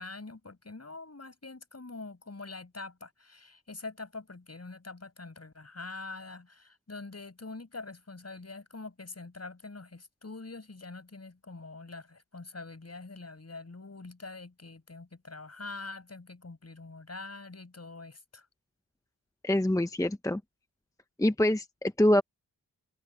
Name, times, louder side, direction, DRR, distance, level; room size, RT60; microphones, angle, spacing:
voice 1, 0.0-18.5, left 3 dB, 45° left, 6.7 m, -44 dB
voice 2, 19.4-20.4 21.2-22.2, left 1 dB, 10° left, 0.9 m, -25 dB
cardioid pair, 45°, 35 cm